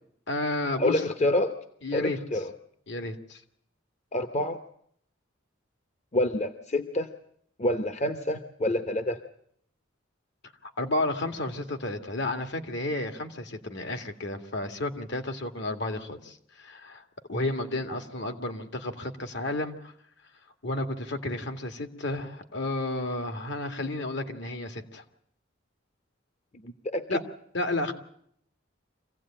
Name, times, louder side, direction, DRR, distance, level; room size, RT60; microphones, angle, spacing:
voice 1, 0.3-1.0 1.8-2.2 2.9-3.4 10.6-17.0 17.3-19.9 20.6-25.0 27.1-27.2 27.5-27.9, left 2 dB, 65° left, 6 dB, 2.1 m, -32 dB
voice 2, 0.8-1.5 1.9-2.5 4.1-4.6 6.1-7.1 7.6-9.2 26.6-27.2, left 1 dB, 35° left, 8 dB, 1.0 m, -27 dB
25.0 x 16.5 x 8.9 m, 0.69 s
head